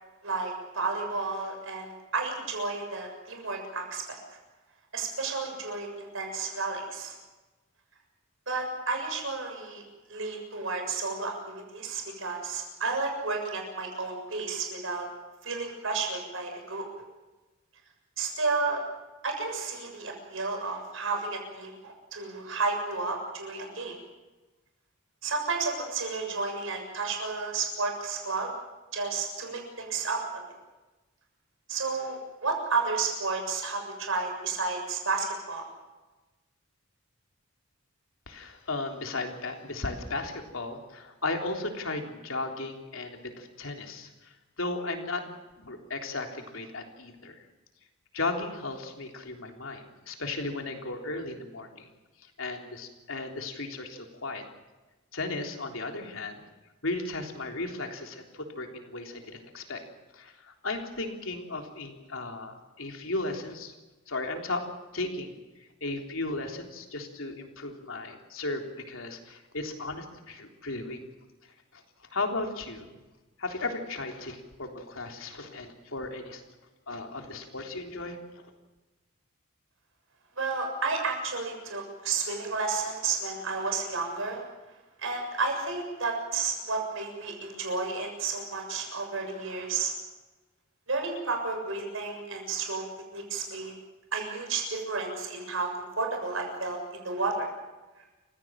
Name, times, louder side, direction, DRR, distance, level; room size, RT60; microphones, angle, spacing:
voice 1, 0.2-4.2 4.9-7.1 8.5-9.8 10.1-15.1 15.4-16.9 18.2-18.8 19.2-24.0 25.2-28.5 28.9-30.4 31.7-35.7 80.4-84.4 85.0-89.9 90.9-92.9 93.1-93.7 94.1-97.5, right 4 dB, 70° right, 3 dB, 7.0 m, -32 dB
voice 2, 38.3-45.2 45.6-47.4 48.1-51.9 52.4-54.5 55.1-56.5 56.8-59.8 60.1-63.7 64.1-64.7 64.9-65.3 65.6-71.0 71.4-71.8 72.1-72.9 73.4-76.4 76.9-78.5, left 2 dB, 70° left, 3 dB, 3.6 m, -35 dB
29.0 x 16.5 x 7.5 m, 1.2 s
head